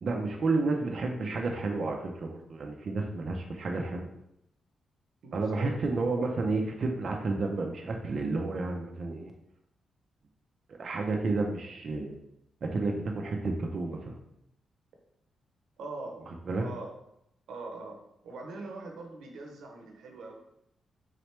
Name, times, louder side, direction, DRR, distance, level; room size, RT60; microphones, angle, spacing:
voice 1, 0.0-4.1 5.3-9.3 10.7-12.1 12.6-14.2 16.3-16.6, right 3 dB, 55° right, 1 dB, 0.5 m, -31 dB
voice 2, 5.2-5.7 15.8-16.3 16.6-16.9 17.5-20.3, right 3 dB, 85° right, 2 dB, 0.8 m, -42 dB
4.0 x 3.0 x 3.2 m, 0.79 s
cardioid pair, 85°, 0 cm